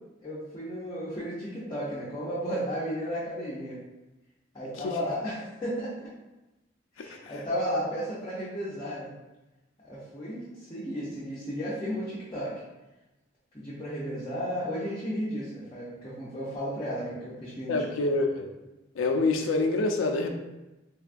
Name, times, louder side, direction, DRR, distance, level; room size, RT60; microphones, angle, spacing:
voice 1, 0.2-3.8 4.5-6.1 7.0-9.1 9.8-12.5 13.5-17.9, equal, 25° left, -8 dB, 0.6 m, -34 dB
voice 2, 7.0-7.3 17.7-18.5 18.9-20.3, left 3 dB, 80° left, 4 dB, 0.4 m, -26 dB
3.4 x 2.2 x 2.5 m, 1.0 s
head